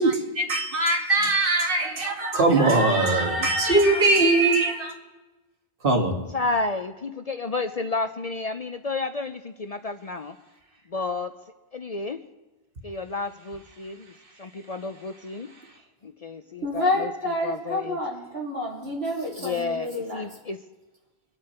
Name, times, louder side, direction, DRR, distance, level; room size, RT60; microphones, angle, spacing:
voice 1, 0.0-4.9 5.8-6.1, right 2 dB, 55° right, 1.9 m, -21 dB
voice 2, 6.3-10.4 10.9-11.3 11.7-12.2 12.8-14.1 14.4-15.5 16.0-18.0 19.4-20.6, left 3 dB, 45° left, 0.6 m, -31 dB
voice 3, 16.6-20.2, left 1 dB, 75° right, 3.8 m, -28 dB
24.5 x 9.0 x 4.4 m
omnidirectional pair, 1.1 m